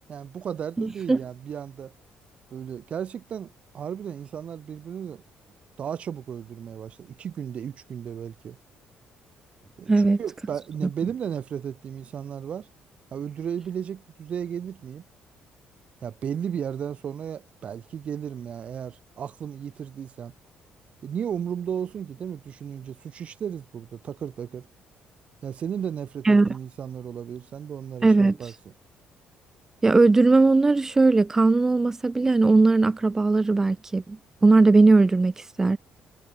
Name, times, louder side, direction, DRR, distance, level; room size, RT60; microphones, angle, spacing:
voice 1, 0.1-1.9 2.5-5.2 5.8-8.6 9.8-12.7 13.1-15.0 16.0-20.3 21.0-24.7 25.4-28.5, right 8 dB, 45° right, 3.5 m, -34 dB
voice 2, 0.8-1.2 9.9-10.2 10.8-10.9 26.3-26.5 28.0-28.4 29.8-35.3 35.6-35.8, right 3 dB, 15° right, 0.7 m, -19 dB
cardioid pair, 150°, 3 cm